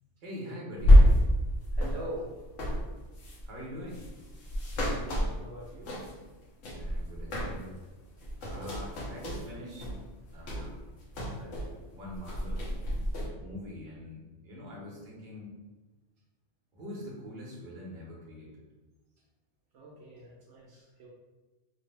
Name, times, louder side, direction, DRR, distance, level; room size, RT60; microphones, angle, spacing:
voice 1, 0.2-1.1 3.5-4.1 6.6-7.8 8.4-9.9 10.3-10.8 11.3-11.6 11.9-12.7 13.4-15.5 16.7-18.6, left 1 dB, 45° right, -4 dB, 1.0 m, -44 dB
sound 1, 0.8-6.3 6.6-7.8 8.1-11.8 12.1-13.3, equal, 90° left, 1.1 m, -26 dB
voice 2, 1.8-2.3 4.8-6.0 8.5-8.7 10.5-10.7 19.7-21.1, right 1 dB, 75° right, -4 dB, 0.9 m, -43 dB
3.0 x 2.1 x 3.2 m, 1.2 s
omnidirectional pair, 1.3 m